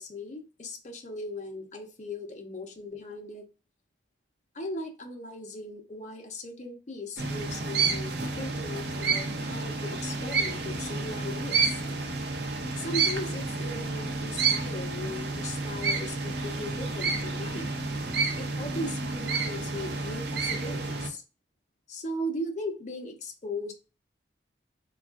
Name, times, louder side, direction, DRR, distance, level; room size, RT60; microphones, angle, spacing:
voice 1, 0.0-3.4 4.5-11.8 12.8-17.7 18.4-21.2 21.9-23.7, left 1 dB, 40° left, 3 dB, 0.6 m, -38 dB
sound 1, 7.2-21.1, right 4 dB, 60° right, 0.5 m, -30 dB
3.5 x 2.3 x 2.3 m, 0.31 s
head